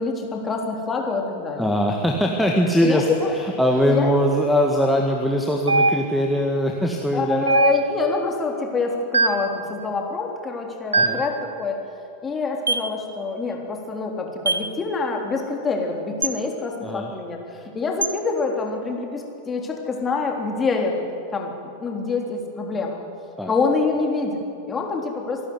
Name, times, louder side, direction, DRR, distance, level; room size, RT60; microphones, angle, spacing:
voice 1, 0.0-1.7 2.8-3.3 3.8-4.2 7.1-11.8 12.2-20.9 21.3-21.5 21.8-23.0 23.5-25.5, left 4 dB, 20° left, 1 dB, 3.5 m, -26 dB
voice 2, 1.6-3.1 3.4-7.4 10.9-11.2 16.8-17.1 23.4-23.5, equal, ahead, -1 dB, 1.8 m, -21 dB
sound 1, 5.7-6.4 7.5-8.1 9.1-9.6 10.9-11.4 12.7-12.9 14.5-14.7 16.2-16.4 18.0-18.2, right 3 dB, 75° right, 0.8 m, -21 dB
26.0 x 12.0 x 9.6 m, 2.5 s
figure-of-eight pair, 90°, 0 cm